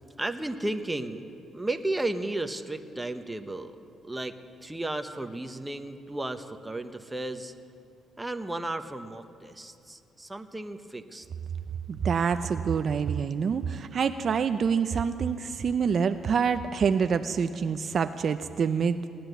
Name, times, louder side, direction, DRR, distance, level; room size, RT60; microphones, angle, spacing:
voice 1, 0.2-1.2 1.5-3.8 4.0-4.4 4.6-7.5 8.2-11.3, right 2 dB, 10° right, 7 dB, 0.9 m, -34 dB
voice 2, 11.9-19.1, right 6 dB, 50° right, 9 dB, 0.5 m, -26 dB
17.5 x 10.5 x 7.9 m, 2.5 s
cardioid pair, 90°, 0 cm